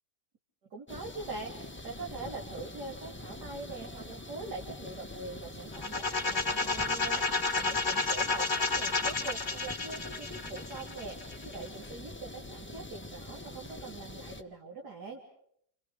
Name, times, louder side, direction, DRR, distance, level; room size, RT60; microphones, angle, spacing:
voice 1, 0.7-1.5 1.8-15.2, right 3 dB, 65° right, 0 dB, 3.4 m, -43 dB
sound 1, 0.9-14.4, left 1 dB, 10° left, 0.9 m, -45 dB
sound 2, 5.7-11.5, left 3 dB, 30° left, 2.0 m, -31 dB
29.0 x 29.0 x 5.2 m, 0.69 s
omnidirectional pair, 1.8 m